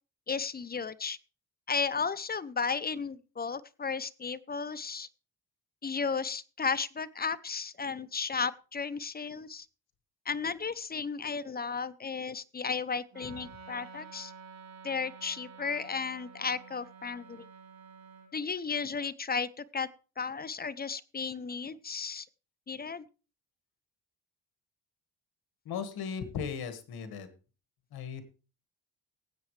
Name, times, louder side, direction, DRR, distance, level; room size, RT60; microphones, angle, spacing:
voice 1, 0.3-1.2 1.7-5.1 5.8-9.7 10.3-14.3 14.8-17.5 18.3-19.9 20.2-22.3 22.7-23.1, left 5 dB, 25° left, 16 dB, 0.6 m, -34 dB
Wind instrument woodwind instrument, 13.1-18.3, right 5 dB, 45° right, 4.2 m, -50 dB
voice 2, 25.7-27.3 27.9-28.2, left 6 dB, 80° left, 9 dB, 1.9 m, -37 dB
19.5 x 8.3 x 3.3 m, 0.34 s
cardioid pair, 95°, 37 cm